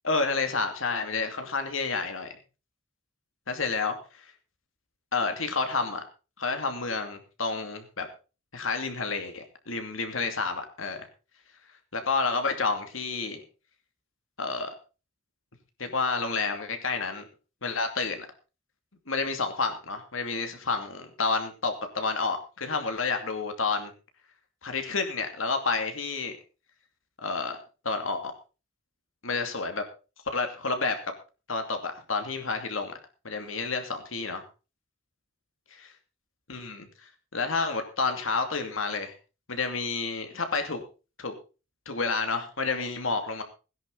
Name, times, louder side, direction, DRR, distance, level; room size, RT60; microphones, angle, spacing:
voice 1, 0.0-2.4 3.5-4.2 5.1-6.0 6.4-8.1 8.5-11.1 11.9-13.4 14.4-14.7 15.8-17.3 17.6-18.3 19.1-23.9 24.6-26.4 27.2-27.6 27.8-28.3 29.2-29.8 30.3-31.1 31.5-32.9 33.2-34.4 35.8-35.9 36.5-39.1 39.5-40.8 41.2-41.3 41.9-43.4, left 4 dB, 90° left, 6 dB, 2.6 m, -30 dB
17.0 x 10.5 x 4.0 m, 0.33 s
head